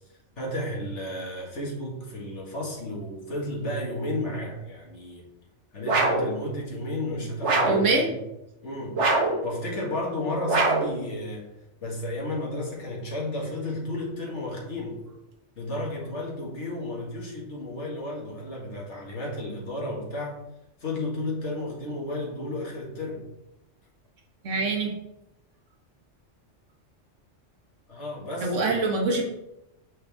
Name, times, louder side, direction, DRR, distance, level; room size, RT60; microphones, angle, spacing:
voice 1, 0.4-5.3 5.7-8.2 8.6-11.5 11.8-15.0 15.6-20.4 20.8-23.2 27.9-28.7, left 1 dB, 70° left, -2 dB, 2.3 m, -33 dB
sound 1, 5.9-6.3 7.4-7.9 9.0-9.4 10.5-11.0, right 2 dB, 70° right, 1.5 m, -23 dB
voice 2, 7.7-8.1 24.4-24.9 28.4-29.2, right 3 dB, 85° right, 1 dB, 1.8 m, -24 dB
8.0 x 5.7 x 3.5 m, 0.88 s
omnidirectional pair, 1.2 m